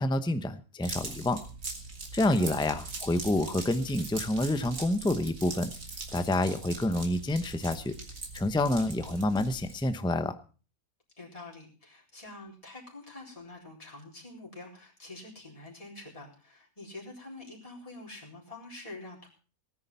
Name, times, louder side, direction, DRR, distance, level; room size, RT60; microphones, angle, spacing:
voice 1, 0.0-1.4 2.1-5.7 6.1-7.9 8.3-10.3, left 1 dB, 5° left, 10 dB, 0.7 m, -28 dB
sound 1, 0.8-10.0, right 3 dB, 65° right, 3.0 m, -41 dB
voice 2, 11.2-19.3, left 2 dB, 25° left, -4 dB, 4.4 m, -46 dB
18.0 x 9.8 x 5.6 m, 0.38 s
omnidirectional pair, 1.5 m